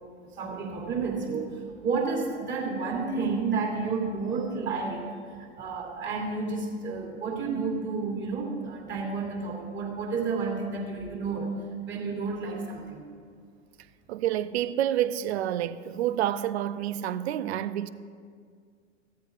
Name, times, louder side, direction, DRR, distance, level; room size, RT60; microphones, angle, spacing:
voice 1, 0.3-11.5 11.8-13.1, right 4 dB, 30° right, 2.8 m, -31 dB
voice 2, 14.1-17.9, right 11 dB, 60° right, 0.6 m, -28 dB
16.5 x 13.0 x 2.5 m
hypercardioid pair, 100°, 38 cm